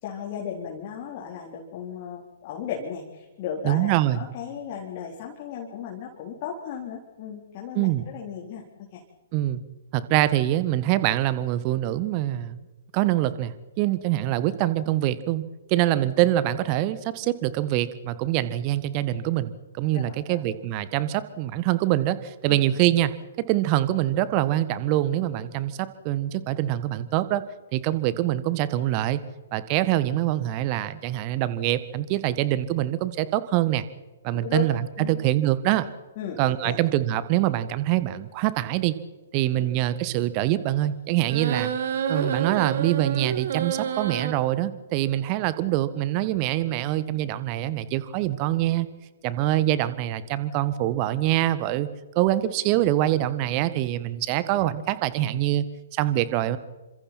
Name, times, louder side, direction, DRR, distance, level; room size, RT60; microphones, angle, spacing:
voice 1, 0.0-9.0 19.9-20.4 22.5-22.6 34.4-34.6 35.0-35.2 36.2-36.8, left 8 dB, 35° left, -1 dB, 3.7 m, -36 dB
voice 2, 3.6-4.2 7.7-8.0 9.3-9.6 9.9-12.6 12.9-15.4 15.7-23.1 23.5-27.4 27.7-29.2 29.5-33.8 34.2-35.9 36.4-38.9 39.3-41.7 42.1-48.9 49.2-51.9 52.1-55.6 55.9-56.6, right 14 dB, 30° right, 15 dB, 1.6 m, -24 dB
sound 1, 41.3-44.3, right 7 dB, 50° right, 2.2 m, -28 dB
29.5 x 26.0 x 4.4 m, 1.1 s
figure-of-eight pair, 120°, 0 cm